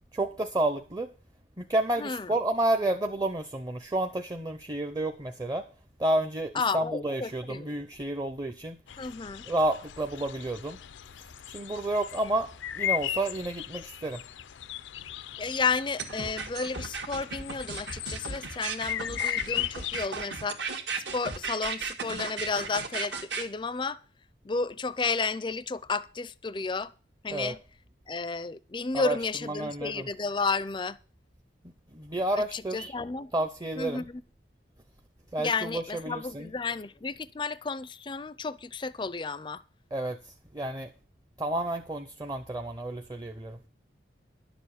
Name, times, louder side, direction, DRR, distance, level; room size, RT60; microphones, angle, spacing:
voice 1, 0.1-1.1 1.6-5.7 6.0-8.8 9.5-10.8 11.5-14.2 27.3-27.5 28.9-29.2 29.4-30.1 31.9-32.9 33.3-34.0 35.3-36.5 39.9-40.9 41.4-43.6, right 1 dB, 20° right, 0.7 m, -30 dB
voice 2, 2.0-2.3 6.5-7.7 9.0-9.4 15.4-20.7 21.1-24.0 24.4-26.9 27.2-27.6 28.1-31.0 32.4-33.3 33.8-34.2 35.4-39.6, left 4 dB, 25° left, 0.5 m, -32 dB
sound 1, 8.9-20.0, left 11 dB, 80° left, 0.5 m, -37 dB
sound 2, 16.0-23.4, right 4 dB, 70° right, 1.8 m, -35 dB
11.0 x 7.1 x 7.1 m
head